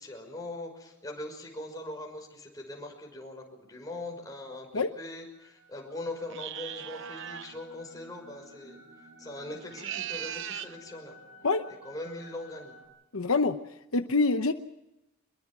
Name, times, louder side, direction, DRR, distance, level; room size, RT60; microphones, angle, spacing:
voice 1, 0.0-8.8 9.2-11.1 11.7-12.7, left 1 dB, 15° left, 1 dB, 5.7 m, -41 dB
sound 1, 5.3-12.9, equal, 35° right, 7.7 m, -54 dB
sound 2, 6.3-7.6 9.6-10.8, right 10 dB, 55° right, 0.8 m, -38 dB
voice 2, 13.1-13.6 13.9-14.5, left 3 dB, 70° left, 8 dB, 0.9 m, -25 dB
25.5 x 22.5 x 6.1 m, 0.93 s
head